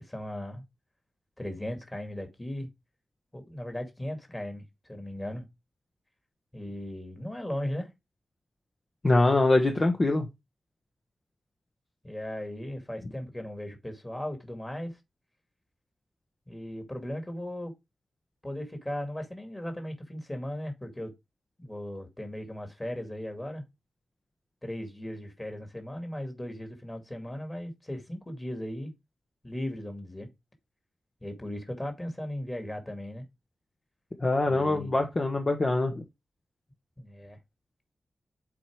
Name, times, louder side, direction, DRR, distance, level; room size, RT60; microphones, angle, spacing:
voice 1, 0.1-0.6 1.4-2.7 3.3-5.5 6.5-7.9 12.0-15.0 16.5-17.7 18.4-21.1 21.6-23.6 24.6-28.9 29.4-30.3 31.2-33.3 34.4-35.0 37.0-37.4, left 1 dB, 15° left, 2.3 m, -37 dB
voice 2, 9.0-10.2 34.2-36.0, left 2 dB, 30° left, 1.1 m, -24 dB
7.5 x 4.6 x 4.7 m
wide cardioid pair, 110°, 0 cm